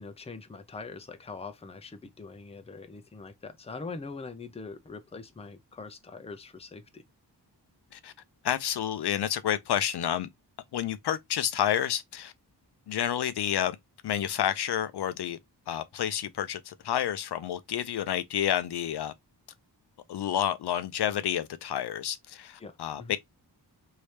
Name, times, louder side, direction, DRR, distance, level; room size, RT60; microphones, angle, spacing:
voice 1, 0.0-7.0 22.6-23.2, left 4 dB, 15° left, 0.5 m, -43 dB
voice 2, 8.4-10.3 10.7-12.3 12.9-13.8 14.0-15.4 15.7-19.1 20.1-23.2, left 10 dB, 70° left, 0.5 m, -29 dB
3.2 x 2.8 x 3.1 m
wide cardioid pair, 130°, 41 cm